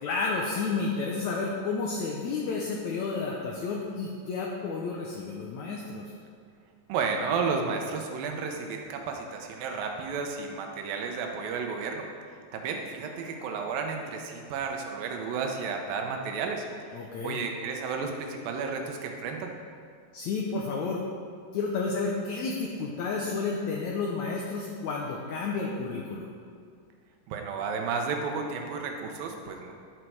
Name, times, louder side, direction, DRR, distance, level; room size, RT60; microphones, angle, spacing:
voice 1, 0.0-6.0 16.9-17.4 20.1-21.0 21.5-26.3, left 4 dB, 70° left, -2 dB, 1.9 m, -31 dB
voice 2, 6.9-12.1 12.5-16.6 17.0-19.5 27.3-29.7, right 5 dB, 85° right, 3 dB, 2.7 m, -32 dB
11.5 x 7.9 x 4.7 m, 2.2 s
omnidirectional pair, 4.0 m